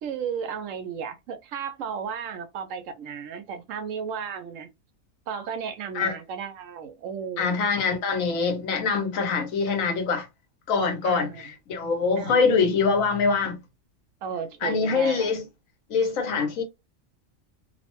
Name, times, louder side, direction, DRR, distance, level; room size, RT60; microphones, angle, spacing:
voice 1, 0.0-4.7 5.3-7.6 11.0-11.4 12.2-12.4 14.2-15.3, right 7 dB, 75° right, 0.9 m, -34 dB
voice 2, 7.4-10.3 10.7-13.6 14.6-15.5 15.9-16.6, left 5 dB, 90° left, 1.2 m, -24 dB
2.8 x 2.0 x 2.9 m
omnidirectional pair, 1.4 m